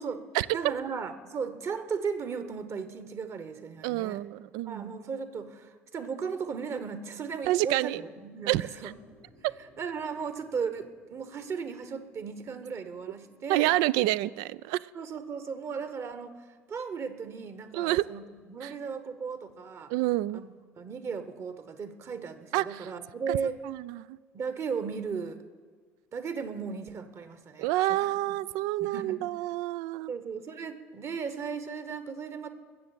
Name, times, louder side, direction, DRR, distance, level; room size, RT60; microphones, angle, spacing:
voice 1, 0.0-4.2 4.7-8.9 9.8-13.8 14.9-19.9 20.3-23.6 24.3-25.4 26.1-28.4 28.8-29.2 30.1-32.5, right 6 dB, 40° right, 1.2 m, -36 dB
voice 2, 3.8-4.9 7.5-8.0 8.5-8.6 9.4-9.5 13.5-14.9 17.7-18.0 18.6-18.7 19.9-20.4 22.5-22.9 23.3-23.4 23.7-24.2 27.6-30.1, right 16 dB, 55° right, 0.4 m, -28 dB
sound 1, 8.7-13.7, equal, 75° right, 5.7 m, -61 dB
21.0 x 7.7 x 7.5 m
figure-of-eight pair, 60°, 8 cm